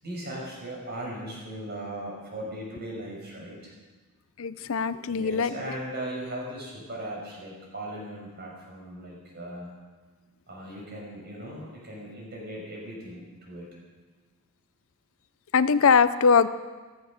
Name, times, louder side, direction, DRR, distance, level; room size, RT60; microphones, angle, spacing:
voice 1, 0.0-3.7 5.1-9.7 10.5-13.7, right 1 dB, 45° right, -2 dB, 6.2 m, -38 dB
voice 2, 4.4-5.5 15.5-16.5, left 5 dB, 65° left, 14 dB, 0.5 m, -21 dB
15.0 x 14.5 x 6.6 m, 1.3 s
head